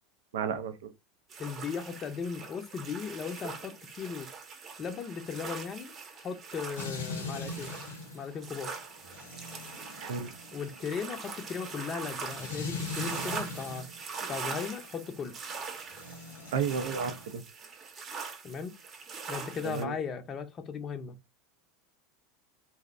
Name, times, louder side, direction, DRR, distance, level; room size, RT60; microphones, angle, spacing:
voice 1, 0.3-0.9 10.0-10.3 16.5-17.4 19.6-19.9, right 6 dB, 70° right, 0.4 m, -32 dB
sound 1, 1.3-19.8, right 5 dB, 35° right, 0.8 m, -42 dB
voice 2, 1.4-4.3 4.8-7.7 8.1-8.8 10.5-13.9 14.3-15.3 18.4-18.7 19.3-21.1, left 6 dB, 35° left, 0.5 m, -37 dB
sound 2, 6.8-14.0 15.9-17.3, left 3 dB, 75° left, 0.7 m, -41 dB
2.6 x 2.0 x 2.5 m
hypercardioid pair, 80°, 0 cm